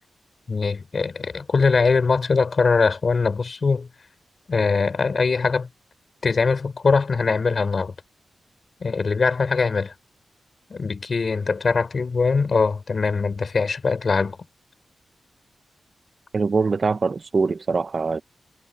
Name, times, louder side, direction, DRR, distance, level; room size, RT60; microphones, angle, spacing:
voice 1, 0.5-3.9 4.5-5.7 6.2-7.9 8.8-9.9 10.7-14.4, left 4 dB, 55° left, 4.1 m, -22 dB
voice 2, 16.3-18.2, right 4 dB, 50° right, 0.8 m, -23 dB
cardioid pair, 60°, 0 cm